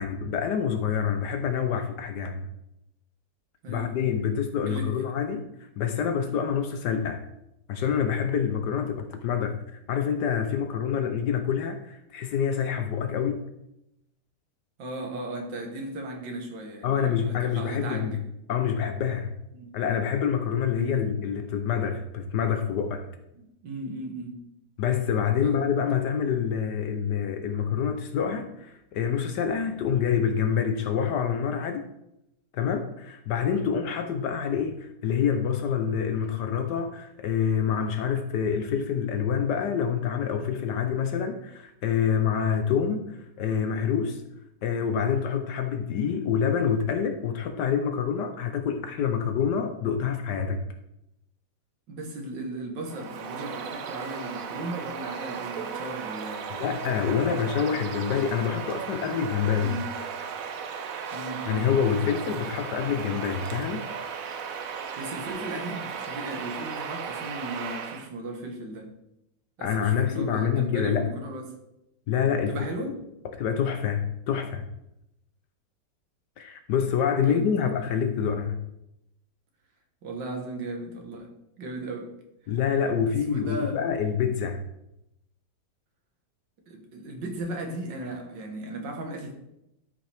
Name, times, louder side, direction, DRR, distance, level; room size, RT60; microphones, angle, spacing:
voice 1, 0.0-2.5 3.7-7.2 7.7-13.4 16.8-18.2 18.5-19.3 19.7-23.1 24.8-31.8 32.5-44.2 44.6-50.6 56.5-59.8 61.5-63.9 69.6-71.1 72.1-72.6 73.4-74.7 76.4-78.6 82.5-84.6, left 7 dB, 75° left, 7 dB, 1.3 m, -27 dB
voice 2, 3.6-4.1 4.7-4.9 14.8-18.2 19.5-19.8 20.7-21.0 23.6-24.4 25.4-25.6 51.9-57.8 59.6-59.9 61.1-61.7 65.0-68.9 69.6-71.5 72.5-73.0 77.2-77.9 80.0-81.3 81.6-82.1 83.1-83.9 86.7-89.3, right 2 dB, 80° right, 2 dB, 2.1 m, -36 dB
Bird vocalization bird call bird song, 52.8-68.1, right 6 dB, 60° right, 1.0 m, -36 dB
12.5 x 5.4 x 3.4 m, 0.84 s
omnidirectional pair, 1.9 m